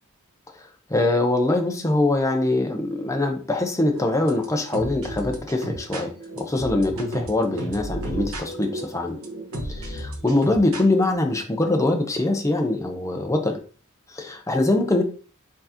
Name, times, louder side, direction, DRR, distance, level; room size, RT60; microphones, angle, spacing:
voice 1, 0.6-9.2 9.7-13.6 14.1-15.0, left 2 dB, 15° left, 4 dB, 0.7 m, -23 dB
sound 1, 3.9-11.1, right 1 dB, 90° right, 1.2 m, -34 dB
4.5 x 3.9 x 2.8 m, 0.38 s
head